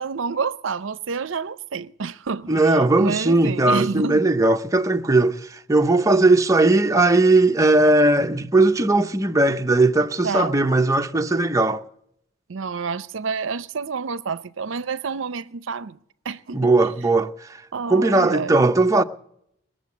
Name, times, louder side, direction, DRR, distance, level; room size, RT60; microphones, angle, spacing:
voice 1, 0.0-4.2 10.2-10.5 12.5-16.0 16.2-16.9 17.7-18.6, right 5 dB, 65° right, 0.5 m, -29 dB
voice 2, 2.5-11.8 16.5-17.6 17.9-19.0, right 2 dB, 15° right, 0.6 m, -18 dB
20.5 x 7.2 x 8.2 m
head